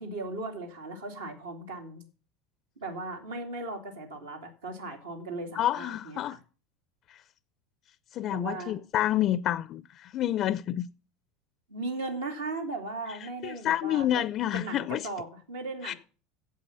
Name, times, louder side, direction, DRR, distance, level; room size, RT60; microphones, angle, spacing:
voice 1, 0.0-2.0 2.8-6.4 8.3-8.8 11.7-14.2 14.5-16.0, right 2 dB, 80° right, 2.9 m, -37 dB
voice 2, 5.5-6.4 7.1-7.2 8.1-10.9 13.1-15.1 15.8-15.9, left 12 dB, 45° left, 0.4 m, -29 dB
8.4 x 7.8 x 7.4 m
hypercardioid pair, 80°, 0 cm